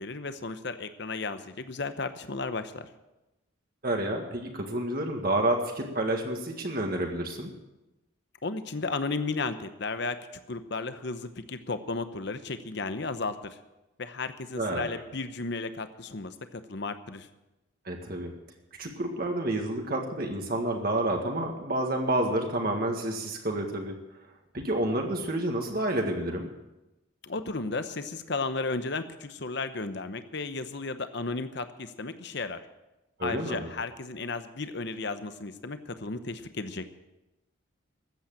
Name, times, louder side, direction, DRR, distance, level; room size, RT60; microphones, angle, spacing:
voice 1, 0.0-2.9 8.4-10.2 10.5-13.3 14.0-17.3 27.2-32.6 33.2-36.8, left 3 dB, 55° left, 10 dB, 0.9 m, -34 dB
voice 2, 3.8-7.5 14.6-14.9 17.9-18.3 18.8-24.0 24.5-26.5 33.2-33.7, right 1 dB, 45° right, 2 dB, 1.8 m, -29 dB
14.0 x 8.7 x 8.7 m, 1.0 s
head